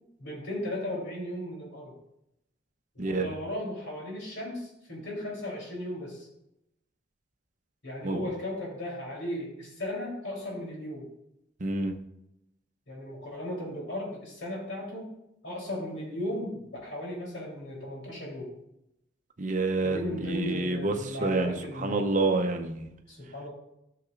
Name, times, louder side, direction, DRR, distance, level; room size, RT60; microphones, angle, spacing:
voice 1, 0.2-1.9 2.9-6.3 7.8-11.0 12.9-15.1 15.4-18.5 19.8-22.0 23.1-23.5, left 1 dB, 65° left, -3 dB, 3.3 m, -36 dB
voice 2, 3.0-3.3 8.0-8.2 11.6-11.9 19.4-22.9, right 2 dB, 40° right, 5 dB, 0.7 m, -28 dB
13.0 x 6.7 x 2.5 m, 0.85 s
head